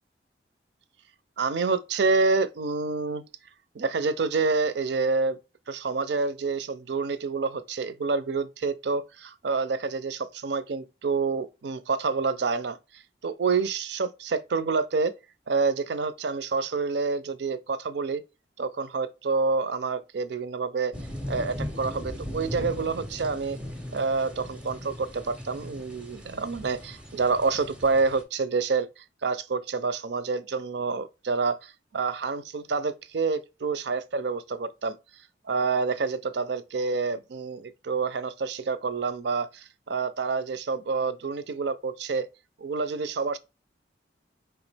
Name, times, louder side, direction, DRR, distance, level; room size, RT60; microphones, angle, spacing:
voice 1, 1.4-3.2 3.7-5.4 5.7-12.8 13.2-15.1 15.5-18.2 18.6-20.9 21.3-23.6 23.9-35.0 35.5-42.3 42.6-43.4, right 4 dB, 65° right, 0.4 m, -28 dB
sound 1, 20.9-28.2, equal, 5° right, 0.5 m, -38 dB
4.5 x 3.0 x 3.3 m
head